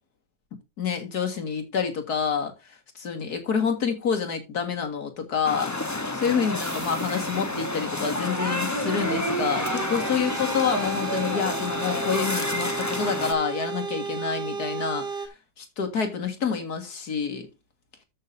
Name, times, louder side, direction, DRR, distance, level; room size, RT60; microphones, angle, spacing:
voice 1, 0.8-2.5 3.0-15.3 15.6-17.5, left 6 dB, 65° left, 2.4 m, -28 dB
sound 1, 5.4-13.3, left 2 dB, 15° left, 0.7 m, -29 dB
sound 2, 6.6-15.3, right 5 dB, 80° right, 2.2 m, -34 dB
13.5 x 6.6 x 2.7 m
omnidirectional pair, 1.8 m